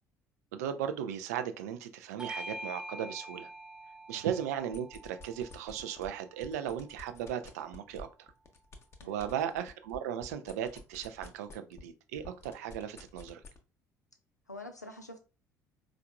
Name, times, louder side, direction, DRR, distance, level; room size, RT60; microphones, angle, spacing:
voice 1, 0.5-3.5 4.1-8.3 9.0-13.4, right 9 dB, 70° right, 0.4 m, -37 dB
Bell / Doorbell, 2.2-7.0, equal, 10° right, 0.5 m, -46 dB
sound 1, 4.6-6.1 6.4-11.9 12.2-13.6, left 3 dB, 30° left, 0.8 m, -50 dB
voice 2, 9.0-9.6 14.5-15.2, left 2 dB, 90° left, 0.4 m, -47 dB
4.5 x 2.4 x 2.2 m
figure-of-eight pair, 55°, 9 cm